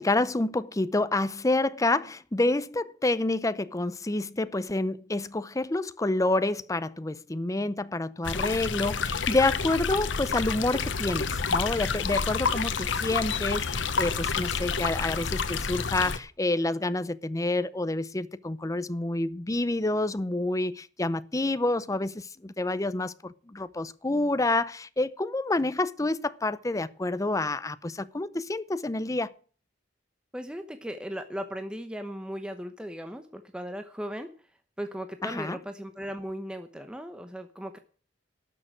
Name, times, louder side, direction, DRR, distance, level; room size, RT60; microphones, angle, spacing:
voice 1, 0.0-29.3 35.2-35.6, left 2 dB, 20° left, 0.6 m, -28 dB
sound 1, 8.2-16.2, left 5 dB, 90° left, 1.0 m, -29 dB
voice 2, 30.3-34.3 34.8-37.8, equal, 5° right, 0.9 m, -37 dB
12.0 x 6.8 x 9.0 m
head